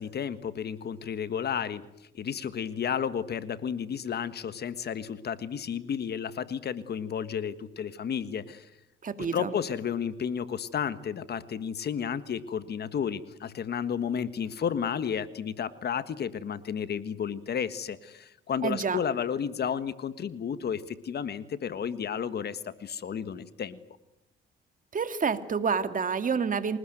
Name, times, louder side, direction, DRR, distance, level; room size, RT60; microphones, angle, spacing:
voice 1, 0.0-8.7 9.2-23.8, left 7 dB, 55° left, 13 dB, 1.5 m, -32 dB
voice 2, 9.0-9.5 18.6-19.0 24.9-26.8, right 6 dB, 40° right, 10 dB, 2.2 m, -28 dB
27.0 x 19.5 x 9.2 m, 0.85 s
cardioid pair, 90°, 20 cm